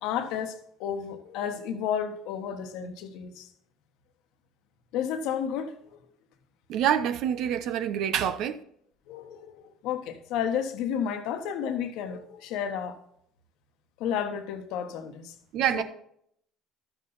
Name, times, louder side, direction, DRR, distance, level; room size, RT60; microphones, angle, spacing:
voice 1, 0.0-3.5 4.9-6.0 9.1-13.0 14.0-15.3 15.7-15.8, left 8 dB, 65° left, 1.3 m, -32 dB
voice 2, 6.7-8.6 15.5-15.8, right 9 dB, 60° right, 0.9 m, -26 dB
12.0 x 8.1 x 4.1 m
hypercardioid pair, 60°, 0 cm